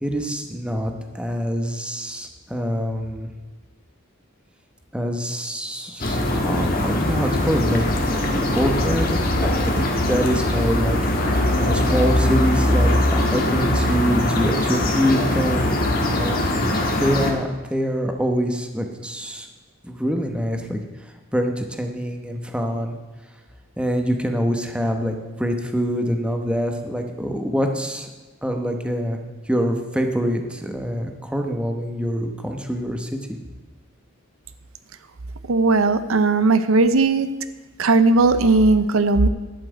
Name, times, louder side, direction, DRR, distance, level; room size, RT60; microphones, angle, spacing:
voice 1, 0.0-3.3 4.9-9.2 9.4-9.5 9.8-11.0 11.5-15.7 16.1-19.5 19.8-20.8 21.3-23.0 23.8-28.1 28.4-29.2 29.5-33.4, equal, 5° right, 4 dB, 1.0 m, -25 dB
sound 1, 6.0-17.3, left 1 dB, 45° left, 1.6 m, -21 dB
voice 2, 35.5-37.3 37.8-39.3, right 3 dB, 85° right, 11 dB, 0.6 m, -17 dB
11.5 x 5.8 x 8.0 m, 1.3 s
head